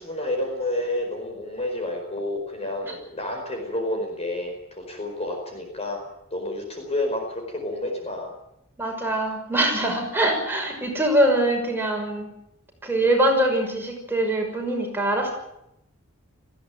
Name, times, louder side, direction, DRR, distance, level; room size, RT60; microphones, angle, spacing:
voice 1, 0.0-6.0 6.3-8.3, left 1 dB, 30° left, 3 dB, 4.8 m, -30 dB
voice 2, 8.8-12.3 12.8-15.3, right 1 dB, 10° right, 1 dB, 6.1 m, -23 dB
20.5 x 16.0 x 9.2 m, 0.81 s
head